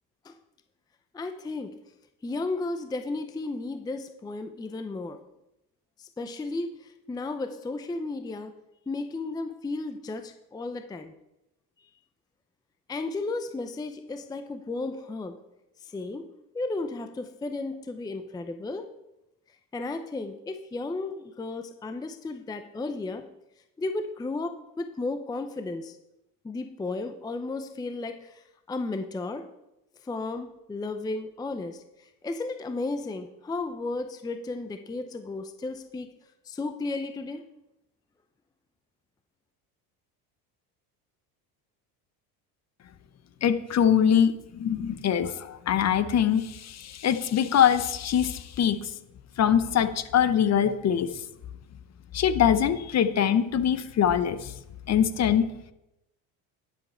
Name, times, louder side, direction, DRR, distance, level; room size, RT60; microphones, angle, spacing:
voice 1, 1.1-1.7 2.2-5.2 6.0-8.5 8.9-11.1 12.9-15.3 15.8-16.2 16.5-18.9 19.7-23.3 23.8-26.0 26.4-28.4 28.7-29.4 30.0-36.1 36.5-37.4, left 3 dB, 10° left, 8 dB, 0.5 m, -34 dB
voice 2, 43.4-48.8 49.4-51.1 52.1-54.5 54.9-55.5, left 9 dB, 40° left, 12 dB, 0.8 m, -23 dB
11.5 x 7.4 x 4.3 m, 0.89 s
supercardioid pair, 110°, 43 cm